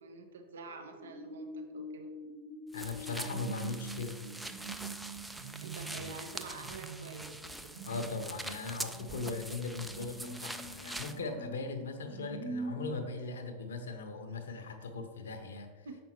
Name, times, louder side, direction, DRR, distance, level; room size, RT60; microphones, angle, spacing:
voice 1, 0.0-2.1 5.6-7.6 7.9-8.0 14.5-14.6 15.0-15.1 15.8-16.0, right 3 dB, 65° right, 5 dB, 0.7 m, -47 dB
sound 1, 0.6-12.9, right 3 dB, 35° right, 1.0 m, -45 dB
voice 2, 2.7-4.2 5.9-6.1 7.8-15.9, left 4 dB, 65° left, 6 dB, 0.8 m, -39 dB
sound 2, 2.7-11.2, right 1 dB, 5° right, 0.3 m, -44 dB
7.1 x 5.2 x 3.0 m, 1.3 s
figure-of-eight pair, 90°, 0 cm